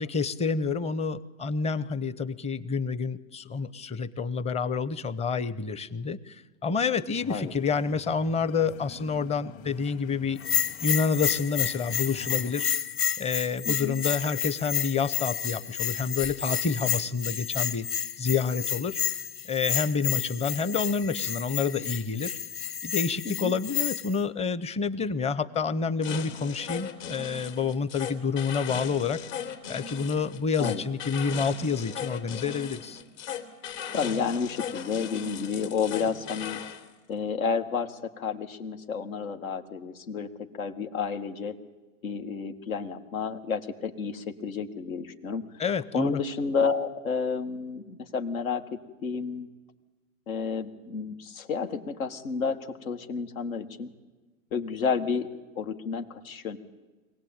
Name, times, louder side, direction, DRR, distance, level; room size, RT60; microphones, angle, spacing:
voice 1, 0.0-10.4 10.8-12.7 13.2-17.9 18.2-19.0 19.5-22.4 22.8-29.2 29.7-33.0 45.6-46.2, left 5 dB, 15° left, 16 dB, 0.8 m, -28 dB
sound 1, 7.2-12.7, left 7 dB, 45° left, 2.5 m, -47 dB
Bell, 10.4-24.2, left 9 dB, 30° left, 1.2 m, -30 dB
sound 2, 26.0-36.8, left 7 dB, 65° left, 3.0 m, -37 dB
voice 2, 33.9-36.6 37.1-41.5 42.0-45.4 45.9-49.5 50.3-53.9 54.5-55.3 55.6-56.6, left 5 dB, 85° left, 6 dB, 1.9 m, -31 dB
24.0 x 17.5 x 8.8 m, 1.2 s
hypercardioid pair, 115°, 41 cm